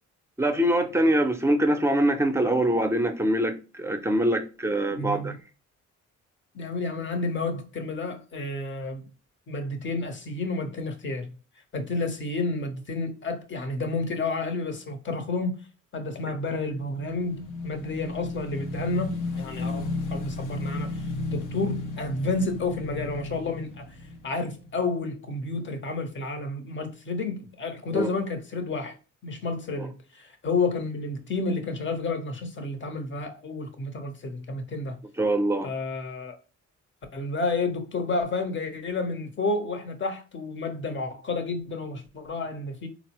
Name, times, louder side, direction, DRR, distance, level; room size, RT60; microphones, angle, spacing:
voice 1, 0.4-5.3 27.9-28.1 29.8-29.9 35.2-35.7, right 1 dB, 10° right, 0.6 m, -24 dB
voice 2, 5.0-5.4 6.5-9.1 9.5-11.3 11.7-15.6 15.9-24.0 24.2-29.0 29.2-35.0 35.6-36.3 37.1-42.9, left 3 dB, 40° left, 0.9 m, -30 dB
Motorcycle / Engine, 16.6-25.1, left 3 dB, 80° left, 0.7 m, -34 dB
3.9 x 2.0 x 2.9 m
cardioid pair, 90°, 30 cm